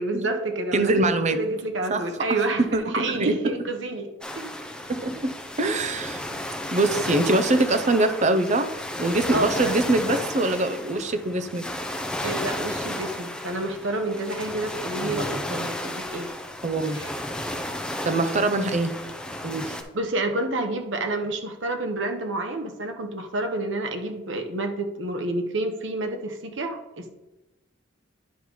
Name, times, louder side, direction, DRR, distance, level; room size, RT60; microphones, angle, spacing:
voice 1, 0.0-4.5 9.3-9.7 12.2-16.3 16.9-17.1 19.9-27.1, right 2 dB, 80° right, 5 dB, 1.0 m, -29 dB
voice 2, 0.7-1.4 1.9-2.0 2.6-3.4 4.9-6.4 6.7-8.7 9.0-11.7 15.0-15.1 16.6-17.0 18.1-18.9 19.4-19.8, right 2 dB, 40° right, 10 dB, 0.6 m, -23 dB
sound 1, 4.2-19.8, left 1 dB, 5° left, 0.5 m, -33 dB
10.0 x 5.2 x 3.1 m, 1.0 s
head